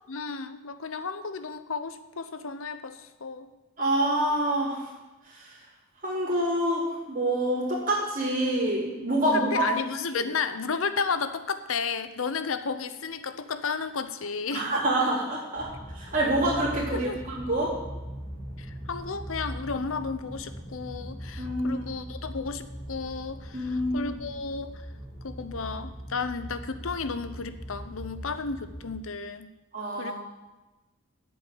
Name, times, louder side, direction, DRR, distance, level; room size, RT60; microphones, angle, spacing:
voice 1, 0.1-3.5 9.3-14.7 16.9-17.2 18.6-24.7 25.2-29.5 30.0-30.1, left 5 dB, 75° left, 12 dB, 0.7 m, -33 dB
voice 2, 3.8-4.9 5.3-5.5 6.0-9.7 14.5-15.7 15.9-17.7 21.4-21.8 23.5-24.1 29.7-30.1, right 1 dB, 40° right, -6 dB, 3.9 m, -26 dB
sound 1, 15.5-28.9, equal, 35° left, 2.7 m, -40 dB
8.7 x 7.5 x 8.4 m, 1.1 s
head